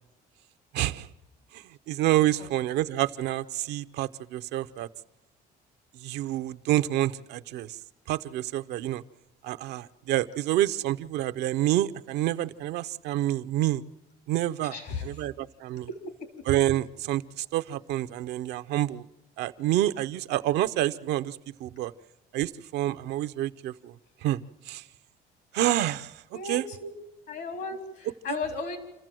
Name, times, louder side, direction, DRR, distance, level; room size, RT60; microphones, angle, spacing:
voice 1, 0.7-1.1 1.5-4.9 5.9-7.8 8.1-9.0 9.4-13.8 14.3-14.7 15.0-15.9 16.5-19.1 19.4-21.9 22.3-24.0 24.2-24.8 25.5-26.6, right 14 dB, 80° right, 10 dB, 0.7 m, -28 dB
voice 2, 14.6-15.3 15.9-16.3 26.3-26.9 27.3-28.8, left 3 dB, 75° left, 6 dB, 3.8 m, -35 dB
27.5 x 14.0 x 7.6 m, 1.0 s
cardioid pair, 110°, 17 cm